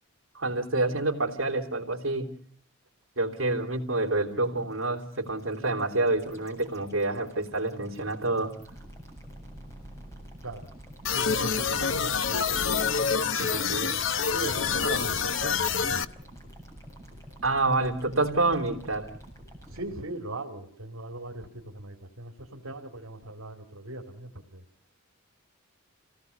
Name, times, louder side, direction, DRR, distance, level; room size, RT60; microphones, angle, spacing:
voice 1, 0.3-2.3 3.2-8.6 11.4-11.7 12.5-12.8 13.4-13.9 17.4-19.1, right 2 dB, 65° right, 3 dB, 3.3 m, -28 dB
sound 1, 4.1-19.8, equal, 15° left, 7.8 m, -49 dB
sound 2, 11.0-16.0, left 6 dB, 60° left, 0.8 m, -27 dB
voice 2, 11.1-12.5 14.3-16.0 19.7-24.6, right 2 dB, 80° right, 2 dB, 2.5 m, -39 dB
27.5 x 18.0 x 6.8 m, 0.64 s
head